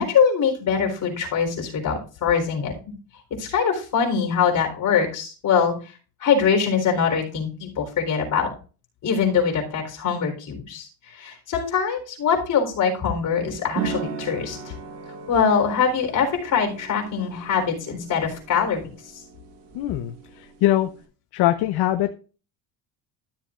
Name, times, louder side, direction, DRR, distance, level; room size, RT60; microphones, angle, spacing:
voice 1, 0.0-2.7 3.4-5.7 6.2-8.5 9.0-14.6 15.3-18.9, left 6 dB, 45° left, 2 dB, 4.0 m, -23 dB
sound 1, 13.7-21.0, right 6 dB, 70° right, 2.2 m, -37 dB
voice 2, 19.7-20.9 21.3-22.1, left 13 dB, 65° left, 9 dB, 0.8 m, -22 dB
13.5 x 7.5 x 2.5 m, 0.36 s
cardioid pair, 115°, 42 cm